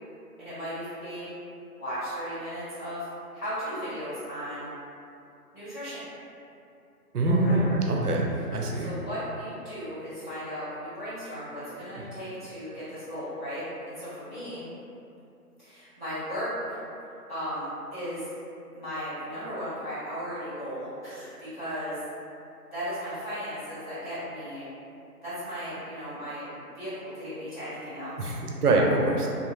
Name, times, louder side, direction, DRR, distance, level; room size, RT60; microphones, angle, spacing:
voice 1, 0.4-1.3 1.8-3.1 3.3-4.7 5.5-6.0 7.3-7.7 8.7-14.6 15.6-16.5 17.3-18.3 18.7-22.0 22.7-24.6 25.2-28.3, equal, 30° left, -15 dB, 1.3 m, -36 dB
voice 2, 7.1-8.3 8.5-8.9 28.2-29.3, right 2 dB, 70° right, 0 dB, 0.5 m, -24 dB
2.7 x 2.4 x 2.3 m, 2.6 s
figure-of-eight pair, 170°, 48 cm